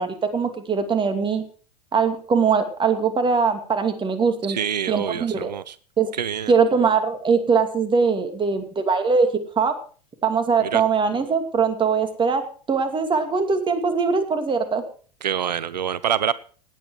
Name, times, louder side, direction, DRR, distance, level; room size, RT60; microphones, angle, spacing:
voice 1, 0.0-1.4 1.9-4.6 4.9-5.5 6.0-6.1 6.5-9.3 9.6-9.7 10.2-14.8, right 5 dB, 25° right, 8 dB, 2.5 m, -21 dB
voice 2, 4.5-5.8 6.1-6.5 10.6-10.8 15.2-16.3, right 8 dB, 85° right, 19 dB, 0.5 m, -26 dB
18.0 x 9.0 x 4.9 m, 0.42 s
hypercardioid pair, 90°, 21 cm